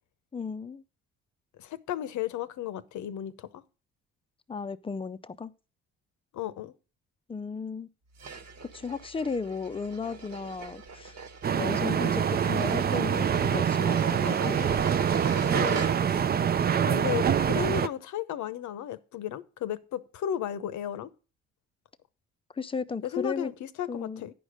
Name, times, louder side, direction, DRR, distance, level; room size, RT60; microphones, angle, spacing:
voice 1, 0.3-0.8 4.5-5.5 7.3-7.9 8.7-11.2 11.5-14.8 22.6-23.5 23.9-24.2, left 5 dB, 20° left, 0.5 m, -35 dB
voice 2, 1.6-3.6 6.3-6.7 15.5-16.3 16.8-21.1 23.0-24.3, left 10 dB, 75° left, 0.8 m, -34 dB
sound 1, 8.2-16.3, right 5 dB, 60° right, 1.4 m, -40 dB
sound 2, 11.4-17.9, right 8 dB, 30° right, 0.4 m, -25 dB
10.0 x 5.1 x 6.3 m
cardioid pair, 90°, 30 cm